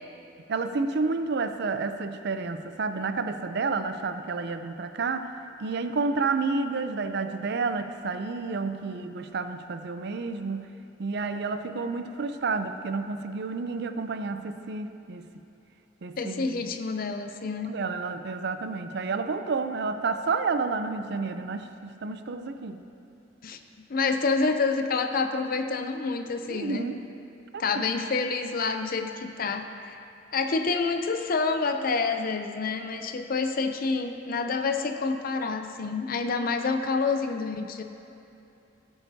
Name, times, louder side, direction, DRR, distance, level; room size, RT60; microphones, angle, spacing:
voice 1, 0.5-5.3 5.6-10.7 11.0-15.3 16.0-16.6 17.6-22.8 26.5-27.0 27.5-27.9, right 4 dB, 60° right, 9 dB, 0.5 m, -30 dB
voice 2, 16.2-17.7 23.4-23.6 23.9-26.8 27.6-30.0 30.3-37.8, left 4 dB, 50° left, 7 dB, 0.5 m, -28 dB
17.0 x 8.0 x 2.7 m, 2.8 s
head